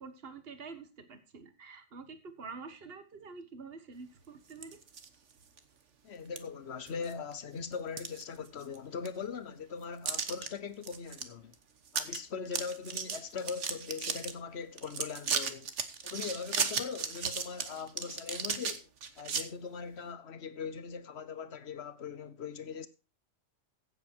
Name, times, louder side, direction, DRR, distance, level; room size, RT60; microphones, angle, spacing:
voice 1, 0.0-4.8, right 4 dB, 55° right, 1.7 m, -47 dB
sound 1, 4.5-5.1 5.6-5.7 6.4-6.5 6.9-7.3 7.7-8.8 9.1-9.2 10.1-10.5 10.8-11.2 11.5-11.6 11.9-12.2 12.5-14.3 14.8-19.4, right 6 dB, 85° right, 1.5 m, -35 dB
voice 2, 6.0-11.6 11.9-15.7 16.0-18.9 19.2-22.9, left 6 dB, 65° left, 1.3 m, -40 dB
15.5 x 8.0 x 4.6 m
omnidirectional pair, 1.2 m